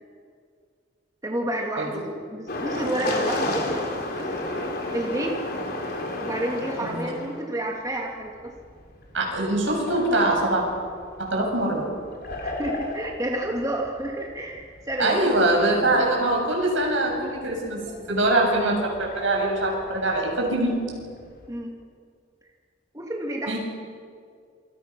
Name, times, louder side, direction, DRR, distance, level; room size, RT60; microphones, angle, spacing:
voice 1, 1.2-4.6 4.9-5.4 6.2-8.6 12.4-15.3 21.5-21.8 22.9-23.6, right 1 dB, 20° right, 0 dB, 2.3 m, -30 dB
sound 1, 2.5-7.4 8.3-21.5, left 2 dB, 50° left, 3.7 m, -33 dB
voice 2, 9.1-10.6 11.2-11.9 15.0-17.8 18.1-20.8 23.5-23.6, right 1 dB, 80° right, 0 dB, 7.2 m, -23 dB
27.5 x 25.5 x 6.1 m, 2.2 s
head